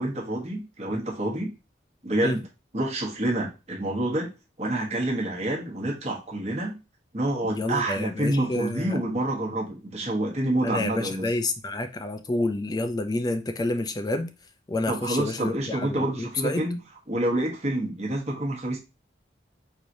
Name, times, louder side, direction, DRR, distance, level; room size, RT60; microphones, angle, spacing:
voice 1, 0.0-1.5 2.0-2.4 2.7-4.3 4.6-6.8 7.1-11.3 14.9-16.8 17.1-18.8, right 1 dB, 35° right, 1.1 m, -28 dB
voice 2, 7.4-9.0 10.6-14.3 14.7-16.6, left 2 dB, 20° left, 0.4 m, -29 dB
4.7 x 2.9 x 2.6 m
head